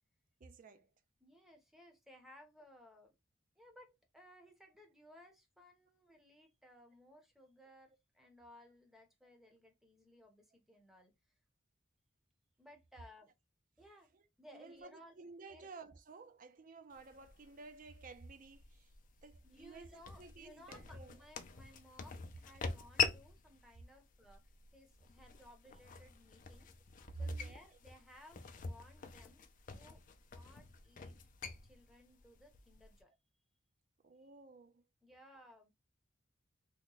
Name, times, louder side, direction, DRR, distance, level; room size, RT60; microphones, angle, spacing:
voice 1, 0.4-0.9 14.1-14.2 14.5-18.9 19.2-21.2 27.1-27.6 34.0-34.8, right 3 dB, 45° right, 0.5 m, -51 dB
voice 2, 1.2-3.1 3.6-11.1 12.6-13.3 13.8-14.1 14.4-15.2 15.5-15.7 19.4-24.4 24.7-26.7 27.2-29.4 29.7-30.0 30.3-31.2 31.6-33.1 34.2-34.3 35.0-35.7, left 1 dB, ahead, 0.7 m, -60 dB
sound 1, 16.9-33.0, left 6 dB, 40° left, 0.4 m, -45 dB
2.9 x 2.2 x 3.8 m
head